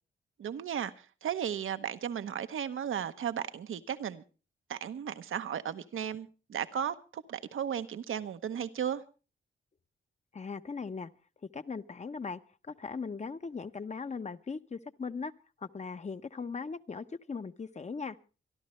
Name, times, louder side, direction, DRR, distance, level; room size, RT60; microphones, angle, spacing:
voice 1, 0.4-4.2 4.7-9.0, right 9 dB, 85° right, 1.0 m, -35 dB
voice 2, 10.3-11.1 11.5-15.3 15.6-18.2, left 5 dB, 35° left, 0.8 m, -39 dB
26.0 x 11.5 x 3.2 m
cardioid pair, 90°, 20 cm